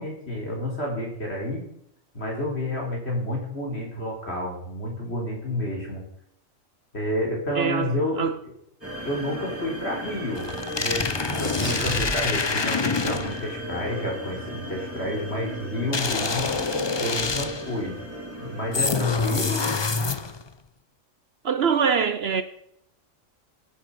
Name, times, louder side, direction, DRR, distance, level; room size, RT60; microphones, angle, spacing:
voice 1, 0.0-1.6 2.1-6.1 6.9-8.2 9.0-10.5 10.8-16.5 17.0-18.0 18.4-19.7, left 1 dB, 55° left, 4.0 m, -30 dB
voice 2, 7.6-8.4 21.4-22.4, right 6 dB, 55° right, 0.9 m, -24 dB
sound 1, 8.8-19.7, equal, 10° right, 3.0 m, -36 dB
sound 2, 10.4-13.5 15.9-17.7 18.7-20.5, left 4 dB, 30° left, 0.5 m, -26 dB
sound 3, 11.6-12.6, equal, 10° left, 4.5 m, -32 dB
17.5 x 8.5 x 5.4 m
omnidirectional pair, 1.4 m